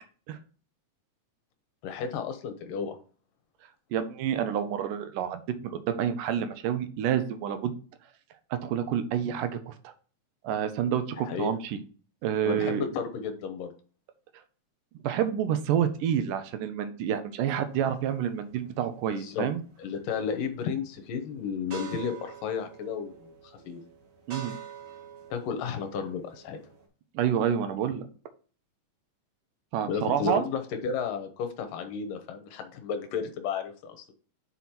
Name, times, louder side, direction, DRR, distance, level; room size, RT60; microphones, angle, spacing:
voice 1, 1.8-3.0 11.2-11.5 12.4-13.7 19.1-19.5 19.8-23.8 25.3-26.6 29.9-34.1, left 6 dB, 80° left, 7 dB, 2.6 m, -33 dB
voice 2, 3.9-7.7 8.5-9.9 10.4-11.8 12.2-12.9 15.0-19.6 24.3-24.6 27.1-28.1 29.7-30.4, right 9 dB, 80° right, 9 dB, 2.3 m, -28 dB
sound 1, 17.6-26.9, right 8 dB, 40° right, 2.5 m, -47 dB
6.3 x 5.4 x 4.3 m, 0.39 s
omnidirectional pair, 3.9 m